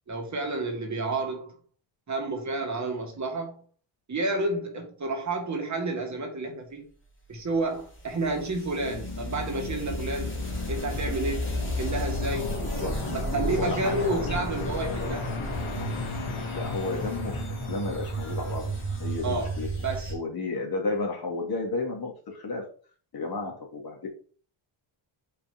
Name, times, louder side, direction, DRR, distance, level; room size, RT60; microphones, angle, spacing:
voice 1, 0.1-1.6 2.1-3.5 4.1-6.9 7.3-10.3 10.7-12.5 13.0-15.4 19.2-19.5 19.8-20.1, right 2 dB, 35° right, 2.1 m, -30 dB
sound 1, 7.3-20.1, equal, 25° left, 2.9 m, -33 dB
sound 2, 8.8-19.5, left 4 dB, 75° left, 2.0 m, -37 dB
voice 2, 13.5-14.4 16.5-18.7 19.0-19.7 20.1-22.6 23.1-24.1, left 3 dB, 45° left, 2.8 m, -32 dB
5.4 x 5.2 x 5.4 m
cardioid pair, 125°, 49 cm